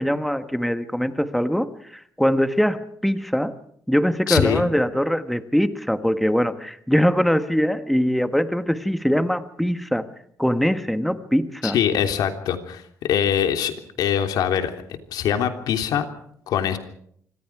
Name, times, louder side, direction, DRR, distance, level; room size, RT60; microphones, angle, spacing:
voice 1, 0.0-3.5 3.9-10.1 10.4-11.7, equal, ahead, 9 dB, 1.3 m, -22 dB
voice 2, 4.3-4.7 11.6-16.0 16.5-16.8, left 9 dB, 85° left, 6 dB, 3.2 m, -23 dB
26.5 x 25.5 x 4.8 m, 0.67 s
cardioid pair, 155°, 7 cm